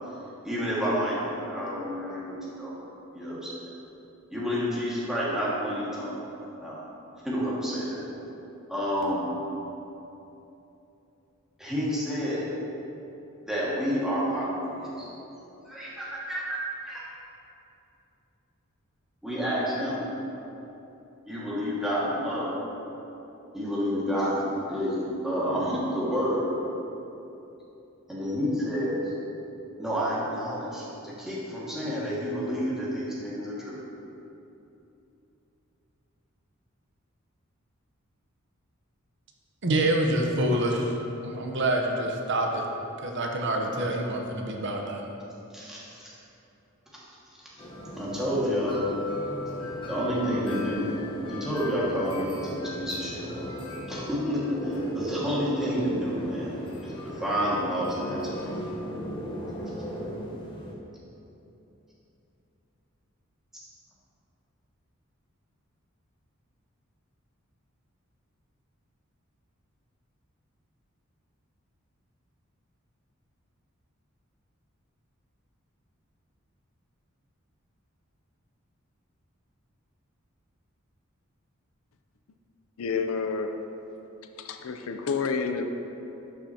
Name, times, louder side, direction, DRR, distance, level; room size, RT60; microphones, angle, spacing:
voice 1, 0.4-2.7 3.1-3.5 4.3-6.2 6.6-6.8 7.2-8.0 8.7-9.3 11.6-12.5 13.4-15.1 15.6-17.1 19.2-20.1 21.3-22.6 23.5-26.5 28.1-29.0 29.8-33.8 45.5-46.1 48.0-48.8 49.9-50.9 51.3-53.5 53.9-58.6, equal, 5° right, -9 dB, 1.8 m, -29 dB
voice 2, 39.6-41.0 41.2-42.6 43.0-45.1, right 1 dB, 60° right, 1 dB, 0.8 m, -26 dB
sound 1, 47.6-60.7, left 1 dB, 25° left, 1.1 m, -37 dB
voice 3, 82.8-83.6 84.4-85.6, left 5 dB, 90° left, 7 dB, 0.5 m, -29 dB
11.5 x 6.0 x 2.8 m, 2.9 s
head